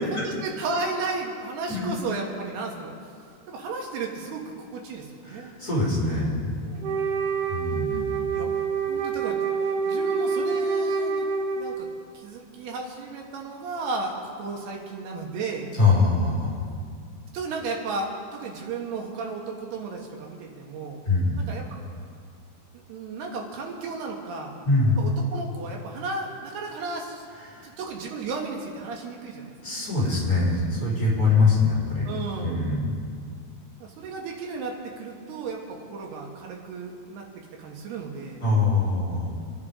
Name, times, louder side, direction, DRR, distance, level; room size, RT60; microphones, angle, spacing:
voice 1, 0.1-2.9 3.5-5.5 6.6-7.1 8.4-8.5 8.9-9.4 9.9-11.3 11.5-11.9 12.1-15.7 17.3-21.0 21.4-21.8 22.9-24.5 24.9-27.2 27.6-29.5 31.2-31.3 32.1-32.8 33.8-37.3 37.5-38.4, right 3 dB, 75° right, 0 dB, 3.5 m, -34 dB
voice 2, 5.2-6.5 7.5-8.3 15.8-16.6 21.0-21.5 24.6-25.0 27.5-27.7 29.6-32.1 32.4-32.9 38.4-39.3, left 3 dB, 20° left, -7 dB, 4.3 m, -23 dB
Wind instrument woodwind instrument, 6.8-12.0, right 5 dB, 60° right, 2.6 m, -27 dB
28.5 x 10.5 x 3.7 m, 2.2 s
omnidirectional pair, 4.7 m